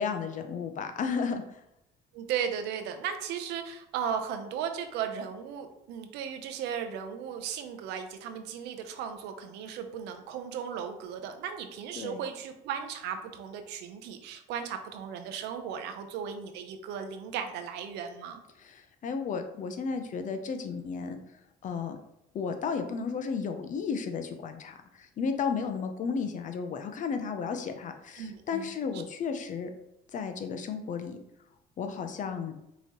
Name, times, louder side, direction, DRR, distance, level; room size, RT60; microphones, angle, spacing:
voice 1, 0.0-1.4 12.0-12.2 18.6-21.2 21.6-22.0 22.3-29.7 30.1-31.2 31.8-32.5, left 5 dB, 50° left, 7 dB, 0.5 m, -33 dB
voice 2, 2.1-18.4 28.2-28.7, right 8 dB, 90° right, 7 dB, 0.6 m, -36 dB
5.5 x 2.9 x 3.0 m, 0.86 s
cardioid pair, 110°, 17 cm